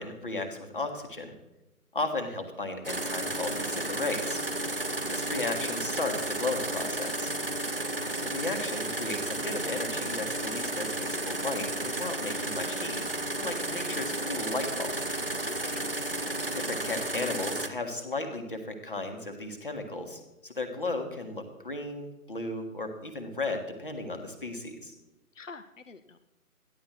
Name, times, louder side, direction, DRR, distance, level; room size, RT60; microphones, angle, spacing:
voice 1, 0.0-1.3 1.9-4.4 5.1-7.3 8.2-15.0 16.5-24.9, left 2 dB, 35° left, 5 dB, 1.6 m, -35 dB
sound 1, 2.8-17.7, right 2 dB, 40° right, 0.7 m, -33 dB
voice 2, 15.4-15.8 25.4-26.2, left 4 dB, 55° left, 10 dB, 0.6 m, -46 dB
14.0 x 11.0 x 4.6 m, 0.98 s
figure-of-eight pair, 160°, 45 cm